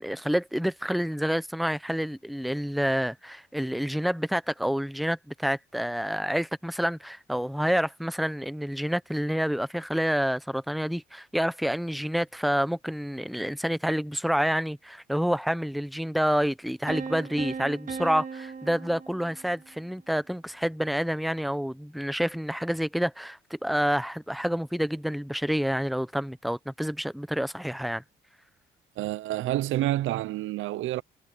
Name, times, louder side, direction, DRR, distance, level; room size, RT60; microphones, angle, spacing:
voice 1, 0.0-28.0, equal, ahead, 0.9 m, -28 dB
sound 1, 16.9-19.8, right 5 dB, 40° right, 2.3 m, -37 dB
voice 2, 29.0-31.0, right 14 dB, 80° right, 0.6 m, -28 dB
cardioid pair, 90°, 20 cm